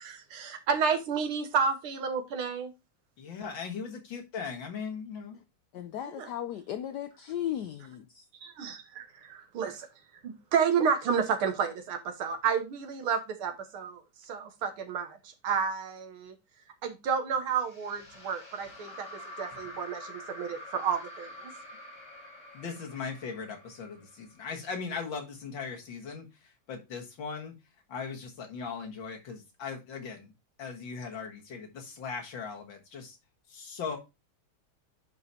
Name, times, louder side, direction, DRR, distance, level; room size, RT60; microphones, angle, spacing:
voice 1, 0.0-2.7 6.2-6.3 8.4-9.9 10.2-16.3 16.8-21.5, right 6 dB, 80° right, 2.0 m, -31 dB
voice 2, 3.2-5.4 22.5-27.5 27.9-30.3 30.6-33.2 33.5-34.0, left 5 dB, 65° left, 2.1 m, -39 dB
voice 3, 5.7-8.3, left 11 dB, 80° left, 0.9 m, -36 dB
sound 1, 17.5-24.8, left 1 dB, 35° left, 3.4 m, -47 dB
10.0 x 4.8 x 2.7 m
omnidirectional pair, 2.3 m